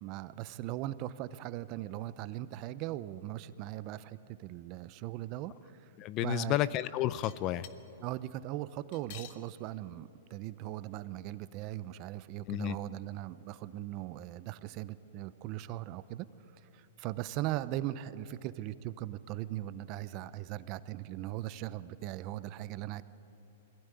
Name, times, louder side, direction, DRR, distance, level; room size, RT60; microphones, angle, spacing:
voice 1, 0.0-5.9 6.2-6.6 8.0-16.3 16.7-23.0, right 14 dB, 40° right, 15 dB, 0.7 m, -39 dB
voice 2, 6.0-7.7 12.5-12.8, left 14 dB, 35° left, 17 dB, 0.6 m, -31 dB
sound 1, 7.2-7.8 8.9-9.4 10.3-10.4 10.6-10.7 11.6-11.7, left 12 dB, 50° left, 1.4 m, -48 dB
22.0 x 15.5 x 9.9 m, 3.0 s
hypercardioid pair, 135°, 0 cm